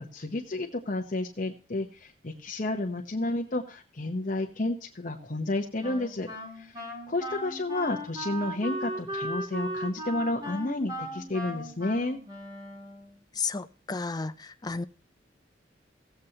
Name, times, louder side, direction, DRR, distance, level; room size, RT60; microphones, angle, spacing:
voice 1, 0.0-6.3 6.6-12.2, left 2 dB, 45° left, 3 dB, 1.0 m, -31 dB
Wind instrument woodwind instrument, 5.8-13.2, equal, 20° right, 2.5 m, -37 dB
voice 2, 13.4-14.9, left 4 dB, 25° left, 12 dB, 0.5 m, -33 dB
17.0 x 7.9 x 2.9 m, 0.36 s
head